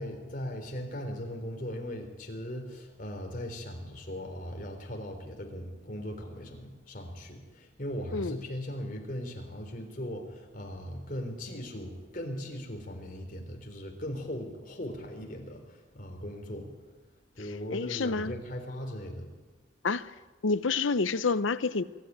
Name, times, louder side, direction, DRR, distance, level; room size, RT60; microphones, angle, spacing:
voice 1, 0.0-16.7 17.4-19.3, equal, 45° left, 3.8 m, -39 dB
voice 2, 17.7-18.3 19.8-20.1 20.4-21.8, left 4 dB, 80° left, 0.7 m, -28 dB
23.5 x 13.0 x 9.4 m
head